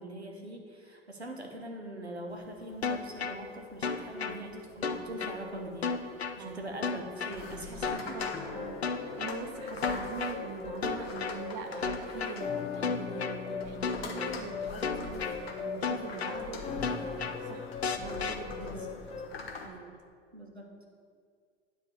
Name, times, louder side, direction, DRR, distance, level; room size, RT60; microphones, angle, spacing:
voice 1, 0.0-6.0 6.4-8.2 18.6-19.1 20.3-20.9, right 1 dB, 90° right, 2 dB, 1.1 m, -42 dB
sound 1, 2.3-19.7, left 4 dB, 70° left, 1.0 m, -46 dB
sound 2, 2.8-3.4 3.8-4.4 4.8-5.4 5.8-6.4 6.8-7.4 7.8-8.4 8.8-9.4 9.8-10.4 10.8-11.4 11.8-12.4 12.8-13.4 13.8-14.4 14.8-15.4 15.8-16.4 16.8-17.4 17.8-18.4, left 5 dB, 85° left, 0.5 m, -32 dB
voice 2, 4.2-4.9 6.4-6.6 7.7-17.7 18.0-18.8 19.6-19.9, right 5 dB, 45° right, 5 dB, 1.0 m, -43 dB
sound 3, 8.3-19.3, left 5 dB, 20° left, 0.6 m, -40 dB
9.6 x 3.8 x 6.9 m, 2.1 s
figure-of-eight pair, 85°, 32 cm